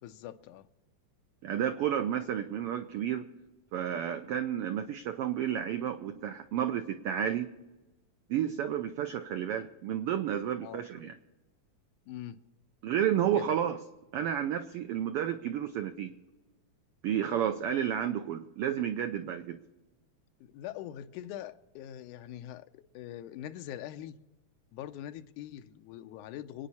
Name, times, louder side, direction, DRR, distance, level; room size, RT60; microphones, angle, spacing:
voice 1, 0.0-0.7 10.6-10.8 12.1-12.4 13.3-13.7 20.4-24.2 24.7-26.7, left 12 dB, 85° left, 2.1 m, -43 dB
voice 2, 1.4-3.3 3.7-7.5 8.3-11.1 12.8-13.8 14.1-16.1 17.0-19.6, right 10 dB, 80° right, 1.3 m, -31 dB
26.5 x 9.6 x 4.2 m
omnidirectional pair, 3.4 m